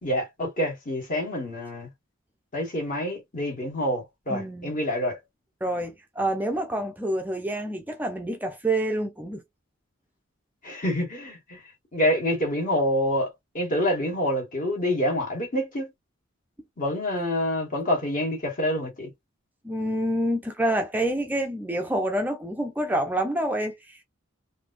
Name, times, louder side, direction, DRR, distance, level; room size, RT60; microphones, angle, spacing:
voice 1, 0.0-1.9 2.5-5.2 10.6-11.6 11.9-15.9 16.8-19.1, left 1 dB, 40° left, 1.6 m, -27 dB
voice 2, 4.3-4.7 5.6-9.4 19.6-24.0, right 1 dB, 10° right, 0.5 m, -27 dB
3.3 x 2.7 x 2.5 m
head